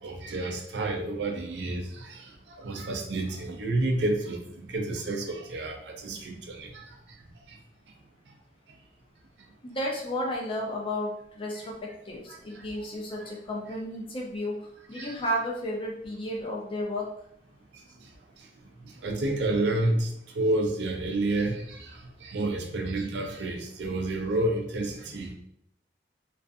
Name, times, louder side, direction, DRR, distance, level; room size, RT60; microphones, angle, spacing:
voice 1, 0.0-2.2 2.6-6.9 12.6-12.7 15.0-15.2 19.0-20.1 20.4-25.3, right 2 dB, 70° right, 3 dB, 0.4 m, -29 dB
voice 2, 9.6-14.6 14.9-17.1 25.1-25.2, left 1 dB, 30° left, -2 dB, 0.5 m, -33 dB
2.5 x 2.4 x 2.3 m, 0.71 s
head